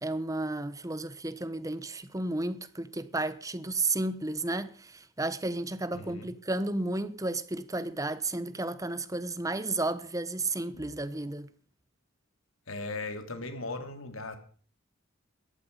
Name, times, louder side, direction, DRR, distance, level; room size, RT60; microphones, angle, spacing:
voice 1, 0.0-11.5, right 2 dB, 15° right, 1.1 m, -32 dB
voice 2, 5.9-6.3 10.7-10.9 12.7-14.4, left 3 dB, 80° left, 3.2 m, -38 dB
17.5 x 14.0 x 5.5 m
head